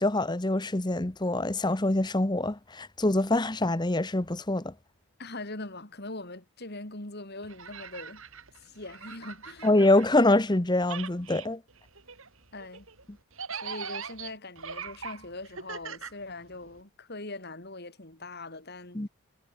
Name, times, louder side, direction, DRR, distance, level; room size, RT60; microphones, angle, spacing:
voice 1, 0.0-4.7 9.6-11.6 18.9-19.1, left 2 dB, 20° left, 1.0 m, -25 dB
voice 2, 5.2-8.2 8.6-9.7 12.5-12.9 13.5-19.1, left 2 dB, 45° left, 3.4 m, -41 dB
sound 1, 7.4-10.5 10.8-16.8, right 6 dB, 65° right, 4.8 m, -42 dB
head